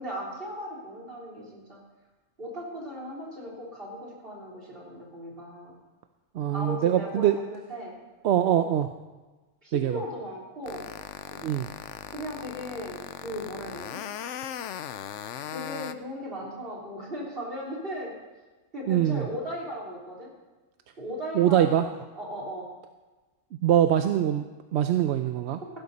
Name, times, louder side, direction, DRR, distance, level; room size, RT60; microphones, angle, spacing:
voice 1, 0.0-1.8 2.4-5.8 6.5-8.0 8.4-8.6 9.6-10.9 11.3-11.4 12.1-14.0 15.5-18.2 18.7-20.3 21.0-22.7, equal, 45° right, -4 dB, 3.6 m, -37 dB
voice 2, 6.3-7.4 8.2-8.9 9.7-10.0 11.4-11.7 18.9-19.3 21.3-21.9 23.6-24.4 24.7-25.6, right 11 dB, 65° right, 8 dB, 0.8 m, -23 dB
sound 1, 10.7-15.9, left 10 dB, 70° left, 0.9 m, -38 dB
15.5 x 12.5 x 4.1 m, 1.2 s
omnidirectional pair, 1.3 m